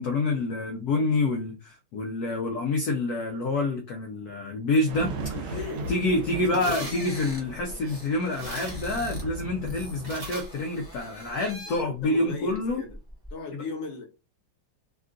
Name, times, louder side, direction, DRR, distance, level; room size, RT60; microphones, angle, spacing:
voice 1, 0.0-5.1 5.4-5.6 5.9-12.8, left 2 dB, 80° left, 0.8 m, -27 dB
sound 1, 4.9-10.3, right 2 dB, 75° right, 1.4 m, -37 dB
voice 2, 5.1-5.9 6.2-6.9 11.6-12.9 13.3-14.0, left 4 dB, 55° left, 1.0 m, -38 dB
sound 2, 5.5-11.5, right 2 dB, 60° right, 0.4 m, -44 dB
sound 3, 6.8-9.3 9.6-12.0 12.5-13.3, equal, 10° left, 0.8 m, -43 dB
3.5 x 2.3 x 2.5 m
omnidirectional pair, 2.3 m